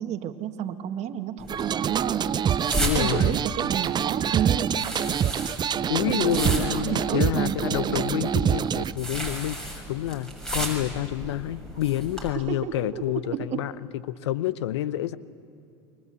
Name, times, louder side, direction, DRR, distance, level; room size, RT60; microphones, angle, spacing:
voice 1, 0.0-2.4 2.9-4.8 6.1-8.0 12.3-13.7, right 10 dB, 50° right, 9 dB, 1.7 m, -31 dB
sound 1, 1.4-12.3, right 1 dB, 5° left, 7.1 m, -35 dB
sound 2, 1.5-8.9, right 8 dB, 30° right, 0.6 m, -26 dB
voice 2, 2.8-3.3 5.9-13.7 14.1-15.2, left 13 dB, 80° left, 17 dB, 0.8 m, -28 dB
29.0 x 23.5 x 8.2 m, 2.5 s
hypercardioid pair, 85°, 14 cm